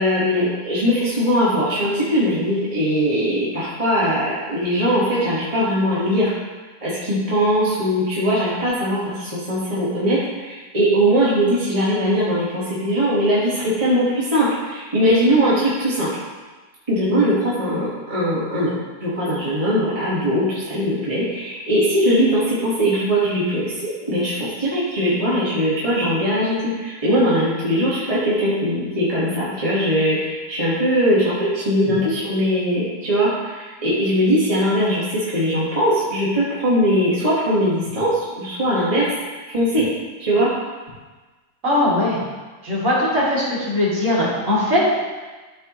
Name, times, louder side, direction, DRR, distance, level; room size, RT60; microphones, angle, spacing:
voice 1, 0.0-6.3 6.8-16.1 16.9-39.1 39.5-39.9 40.2-40.5, equal, 20° right, -9 dB, 1.5 m, -20 dB
voice 2, 41.6-42.2 42.6-44.9, left 1 dB, 45° right, -10 dB, 3.1 m, -20 dB
12.5 x 4.5 x 3.0 m, 1.3 s
omnidirectional pair, 1.9 m